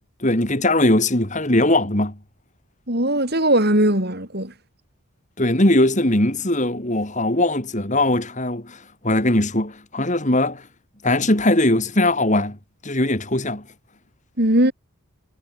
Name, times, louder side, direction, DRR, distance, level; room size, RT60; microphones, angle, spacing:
voice 1, 0.2-2.2 5.4-8.8 9.0-10.6 11.0-12.6 12.8-13.6, left 1 dB, 35° left, 3.2 m, -20 dB
voice 2, 2.9-4.5 14.4-14.7, right 1 dB, 45° right, 7.4 m, -19 dB
head